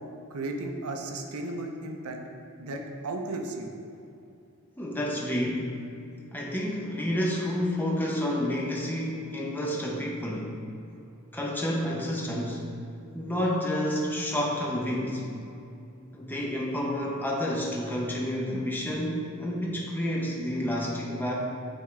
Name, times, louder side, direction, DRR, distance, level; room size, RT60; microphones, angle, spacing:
voice 1, 0.3-2.2 2.6-3.7 10.9-11.1, right 2 dB, 80° right, 3 dB, 0.6 m, -35 dB
voice 2, 4.8-5.7 6.3-10.6 11.3-12.6 13.1-15.3 16.1-21.4, equal, 10° left, -3 dB, 0.7 m, -29 dB
9.2 x 3.6 x 3.2 m, 2.6 s
head